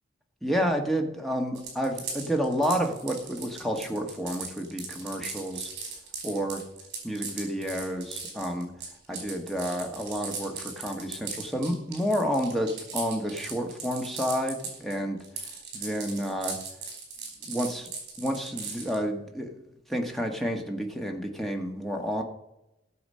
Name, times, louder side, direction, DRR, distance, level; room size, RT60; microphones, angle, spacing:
voice 1, 0.4-5.7 6.2-6.6 7.0-8.7 9.1-15.2 15.7-16.6 17.4-17.9 18.2-19.6 19.9-22.2, equal, ahead, 2 dB, 1.4 m, -30 dB
sound 1, 1.5-14.9 15.2-19.0, right 5 dB, 60° right, 4.5 m, -38 dB
16.0 x 7.0 x 5.6 m, 0.91 s
head